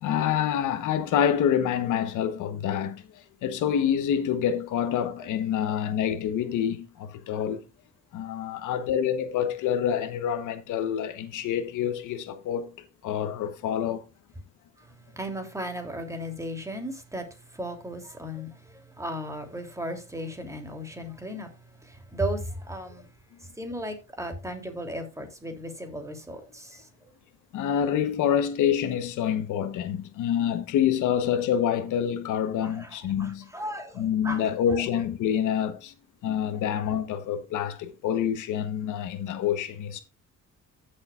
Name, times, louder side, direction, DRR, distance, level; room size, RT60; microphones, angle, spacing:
voice 1, 0.0-3.0 3.4-7.6 8.1-12.7 13.0-14.0 27.5-33.5 34.0-35.9 36.2-40.0, left 9 dB, 90° left, 1.1 m, -27 dB
voice 2, 15.2-17.2 17.5-21.5 21.8-23.1 23.6-26.9 32.6-34.4 34.7-34.8, equal, 10° right, 3.0 m, -35 dB
15.5 x 6.6 x 2.4 m
cardioid pair, 90°, 30 cm